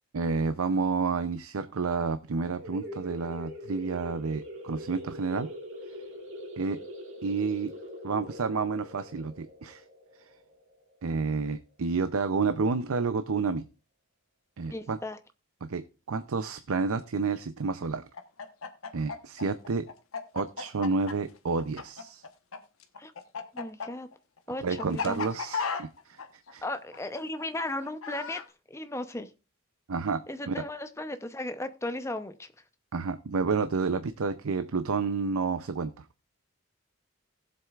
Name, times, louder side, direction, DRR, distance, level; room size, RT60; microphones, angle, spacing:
voice 1, 0.1-5.5 6.6-6.8 7.2-7.7 8.0-9.8 11.0-13.7 14.6-15.0 15.6-18.1 18.9-19.9 20.3-22.2 24.6-26.6 29.9-30.2 30.5-30.6 32.9-36.1, right 4 dB, 80° right, 11 dB, 0.6 m, -30 dB
sound 1, 2.6-11.9, equal, 60° right, 2.6 m, -43 dB
voice 2, 14.7-15.2 23.0-23.1 23.5-24.1 24.5-25.3 26.6-28.4 28.7-29.3 30.3-32.5, left 1 dB, 15° left, 9 dB, 0.7 m, -36 dB
Chicken rooster, 18.1-22.6 22.8-28.5, left 5 dB, 75° left, 1.1 m, -35 dB
18.5 x 7.7 x 2.4 m, 0.31 s
head